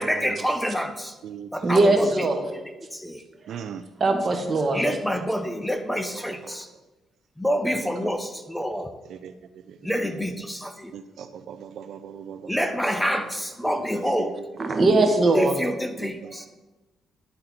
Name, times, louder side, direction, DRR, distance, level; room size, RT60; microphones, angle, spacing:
voice 1, 0.0-1.2 1.5-2.3 2.9-3.2 4.7-6.7 7.4-8.9 9.8-10.9 12.5-14.3 15.3-16.5, equal, 5° left, 7 dB, 0.6 m, -27 dB
voice 2, 1.6-2.4 4.0-4.8 14.6-15.5, right 2 dB, 35° right, 4 dB, 1.2 m, -20 dB
voice 3, 3.5-3.8 9.2-9.3 10.9-12.4, right 8 dB, 70° right, 9 dB, 0.4 m, -38 dB
11.0 x 3.9 x 4.2 m, 1.1 s
cardioid pair, 90°, 0 cm